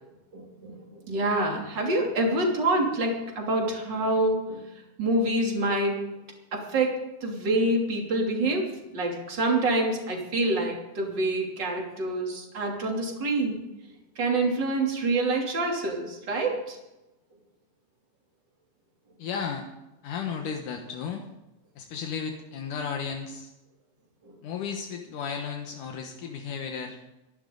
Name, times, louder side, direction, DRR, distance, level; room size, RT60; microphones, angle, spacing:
voice 1, 0.3-4.6 5.0-6.0 6.7-6.9 7.2-13.6 14.1-16.8 24.2-24.3, right 2 dB, 25° right, 0 dB, 2.9 m, -26 dB
voice 2, 19.2-19.7 20.0-21.2 21.8-23.5 24.4-27.0, left 6 dB, 75° left, 3 dB, 1.9 m, -34 dB
24.5 x 12.0 x 3.9 m, 0.98 s
omnidirectional pair, 5.5 m